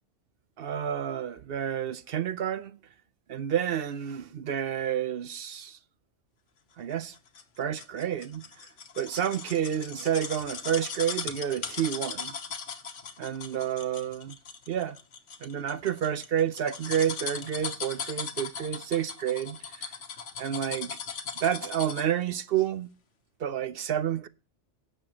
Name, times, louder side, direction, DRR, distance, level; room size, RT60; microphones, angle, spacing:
voice 1, 0.6-2.8 3.3-5.8 6.8-7.2 7.6-8.5 9.0-12.3 13.2-14.4 14.7-15.0 15.4-19.9 20.4-21.0 21.4-22.9 23.4-24.3, right 9 dB, 60° right, 0.7 m, -30 dB
sound 1, 7.0-22.2 22.6-22.7, left 6 dB, 85° left, 1.4 m, -38 dB
16.5 x 6.8 x 2.9 m
omnidirectional pair, 1.2 m